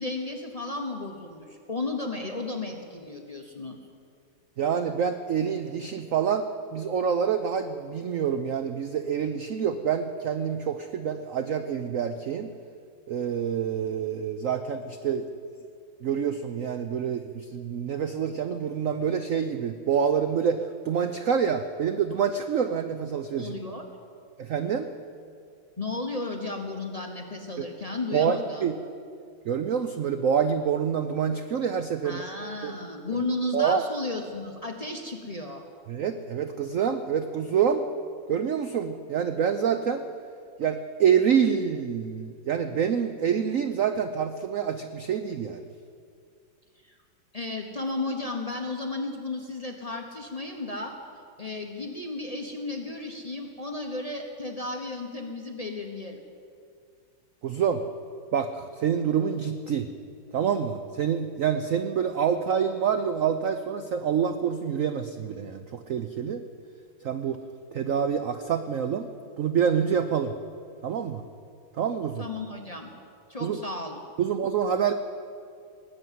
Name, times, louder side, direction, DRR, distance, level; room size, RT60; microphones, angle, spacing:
voice 1, 0.0-3.8 23.4-23.8 25.8-28.7 32.0-35.7 46.8-46.9 47.3-50.9 51.4-56.2 72.2-72.9 73.3-74.0, left 2 dB, 25° left, 3 dB, 0.9 m, -34 dB
voice 2, 4.6-6.5 6.7-12.5 13.1-15.2 16.0-23.6 24.4-24.9 27.6-27.7 28.1-28.7 29.5-32.2 32.6-32.7 33.5-33.8 35.9-37.9 38.3-40.0 40.6-45.6 57.4-57.8 58.3-59.9 60.3-66.4 67.0-67.4 67.7-69.1 69.4-70.3 70.8-71.2 71.8-72.3 73.4-73.6 74.2-74.9, right 7 dB, 70° right, 8 dB, 0.7 m, -27 dB
19.0 x 7.8 x 9.3 m, 2.3 s
omnidirectional pair, 2.1 m